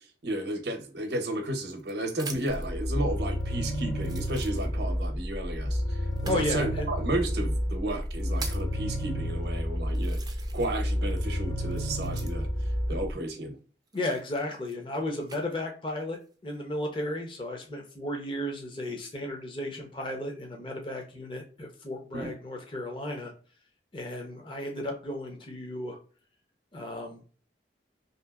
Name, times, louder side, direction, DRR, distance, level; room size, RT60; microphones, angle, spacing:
voice 1, 0.2-10.2 10.5-12.5 12.9-13.5 22.1-22.3, right 1 dB, 70° right, 0.7 m, -33 dB
sound 1, 1.0-2.7 3.4-3.5 4.0-5.0 6.1-6.5 7.3-7.4 8.0-8.8 9.4-9.5 9.9-10.8 11.1-12.6 13.9-15.4 16.1-16.6, right 5 dB, 25° right, 0.4 m, -44 dB
sound 2, 2.5-13.1, equal, 85° left, 0.7 m, -30 dB
voice 2, 6.3-6.9 13.9-23.3 23.9-26.0 26.7-27.2, left 1 dB, 30° left, 0.6 m, -34 dB
2.8 x 2.7 x 2.3 m
head